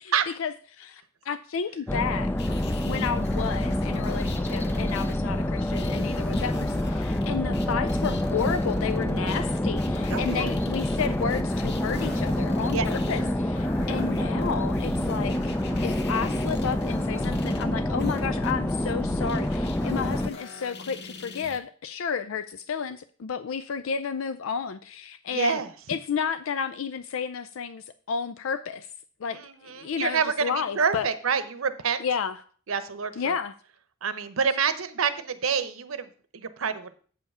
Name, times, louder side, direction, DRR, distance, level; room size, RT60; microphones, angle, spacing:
voice 1, 0.4-15.5 15.8-25.6 25.9-28.9 29.2-31.1 32.0-32.4 33.2-33.5, left 6 dB, 75° left, 11 dB, 0.4 m, -32 dB
sound 1, 1.9-20.3, left 1 dB, 10° left, 0.3 m, -27 dB
sound 2, 2.4-21.6, left 3 dB, 55° left, 1.0 m, -42 dB
voice 2, 10.1-10.5 12.7-12.8 25.3-25.7 29.3-32.0 32.7-33.3 34.0-36.1 36.3-36.9, right 6 dB, 80° right, 12 dB, 0.8 m, -27 dB
8.4 x 5.7 x 5.4 m, 0.43 s
head